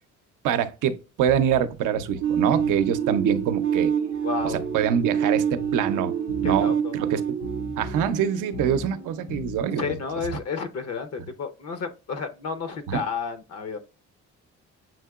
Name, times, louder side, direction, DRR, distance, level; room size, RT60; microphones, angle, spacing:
voice 1, 0.4-3.9 4.4-5.4 5.7-6.1 6.4-7.2 7.8-10.0 12.9-13.0, right 8 dB, 85° right, 0.6 m, -25 dB
sound 1, 1.9-9.9, left 2 dB, 85° left, 2.5 m, -40 dB
sound 2, 2.2-9.0, right 8 dB, 40° right, 0.5 m, -26 dB
voice 2, 4.2-4.6 6.4-6.9 9.8-13.8, left 5 dB, 55° left, 0.7 m, -31 dB
7.2 x 2.8 x 2.3 m
cardioid pair, 90°, 30 cm